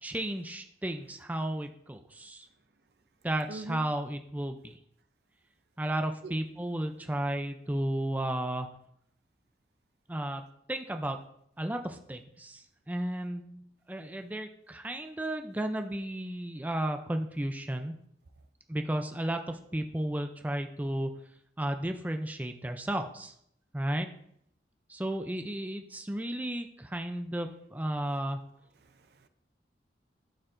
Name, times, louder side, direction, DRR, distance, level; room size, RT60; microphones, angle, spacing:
voice 1, 0.0-2.5 3.2-4.8 5.8-8.7 10.1-10.4 10.7-11.2 11.6-17.9 18.7-21.1 21.6-23.3 23.7-24.1 24.9-28.4, right 1 dB, 10° right, 5 dB, 0.4 m, -33 dB
voice 2, 3.5-3.8 6.2-6.3 28.8-29.3, right 2 dB, 65° right, 10 dB, 0.5 m, -43 dB
12.0 x 4.6 x 2.6 m, 0.70 s
head